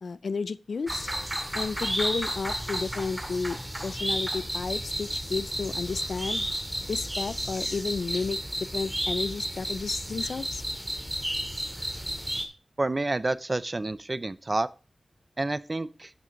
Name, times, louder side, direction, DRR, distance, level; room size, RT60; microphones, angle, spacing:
voice 1, 0.0-1.1 1.5-3.6 3.8-6.5 6.9-10.6, left 4 dB, 85° left, 0.5 m, -32 dB
sound 1, 0.9-12.4, equal, 10° right, 2.4 m, -32 dB
voice 2, 12.8-14.7 15.4-16.1, right 2 dB, 35° right, 0.6 m, -29 dB
11.5 x 7.5 x 3.9 m
wide cardioid pair, 75°, 0 cm